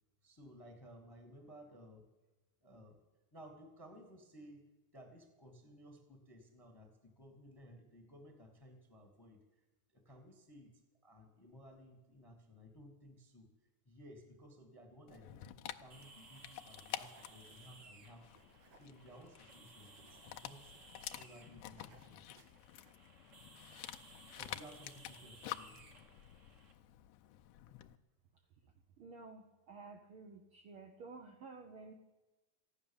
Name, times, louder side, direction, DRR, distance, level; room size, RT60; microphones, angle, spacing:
voice 1, 0.2-2.1 2.6-3.0 3.3-4.6 4.9-9.6 9.9-13.5 13.8-18.4 18.7-20.7 21.1-22.2 24.3-25.8, equal, 10° left, 4 dB, 1.0 m, -57 dB
Dog, 15.1-28.0, left 13 dB, 80° left, 1.5 m, -50 dB
sound 1, 15.9-26.7, right 3 dB, 40° right, 1.1 m, -60 dB
sound 2, 15.9-16.4 16.7-18.0 18.4-21.3 21.7-23.0, right 5 dB, 90° right, 2.9 m, -67 dB
voice 2, 28.3-31.9, right 4 dB, 65° right, 3 dB, 1.3 m, -53 dB
15.0 x 10.5 x 7.0 m, 1.1 s
omnidirectional pair, 3.4 m